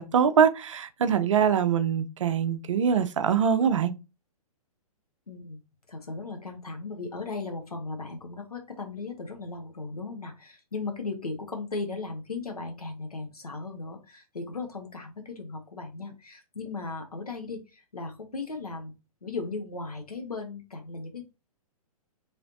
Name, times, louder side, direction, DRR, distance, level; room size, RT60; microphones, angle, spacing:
voice 1, 0.0-3.9, right 7 dB, 55° right, 0.5 m, -23 dB
voice 2, 5.3-5.6 5.9-18.9 19.2-21.2, left 3 dB, 80° left, 0.7 m, -37 dB
3.2 x 3.0 x 2.7 m
figure-of-eight pair, 115°, 19 cm